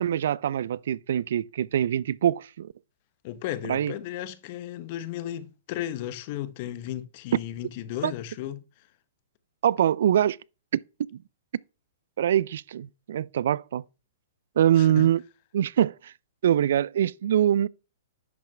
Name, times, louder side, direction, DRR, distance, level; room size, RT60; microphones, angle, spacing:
voice 1, 0.0-2.7 3.6-3.9 8.0-8.1 9.6-10.4 10.7-10.8 12.2-13.8 14.6-15.2 15.5-16.1 16.4-17.7, right 10 dB, 70° right, 0.3 m, -23 dB
voice 2, 3.2-8.6 14.8-15.1, left 12 dB, 45° left, 0.9 m, -34 dB
10.5 x 6.0 x 3.3 m
hypercardioid pair, 130°, 0 cm